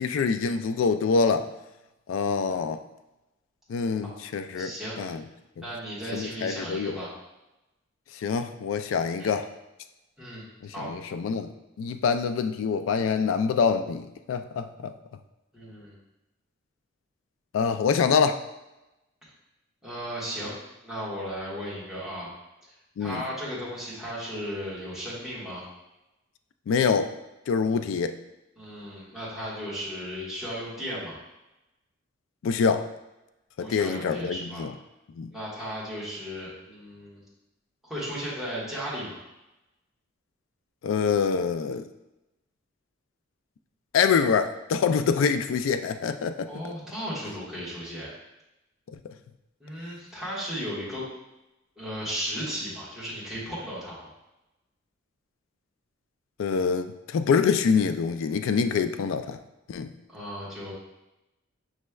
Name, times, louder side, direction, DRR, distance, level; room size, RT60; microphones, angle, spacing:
voice 1, 0.0-1.5 2.1-2.8 3.7-5.2 6.1-7.0 8.1-9.5 10.6-14.9 17.5-18.4 23.0-23.2 26.7-27.1 27.5-28.1 32.4-32.9 33.6-34.7 35.2-35.3 40.8-41.8 43.9-46.6 56.4-59.4 59.7-59.9, left 5 dB, 75° left, 10 dB, 0.3 m, -25 dB
voice 2, 4.5-5.0 5.6-7.1 9.2-9.3 10.2-10.4 10.7-10.9 15.5-15.9 19.8-20.5 20.8-22.3 22.6-22.7 23.0-25.6 28.6-31.2 33.6-34.6 35.3-37.2 37.8-39.2 46.5-48.1 49.6-51.0 51.7-54.1 60.1-60.7, equal, ahead, -10 dB, 1.5 m, -35 dB
6.2 x 3.1 x 2.3 m, 0.96 s
head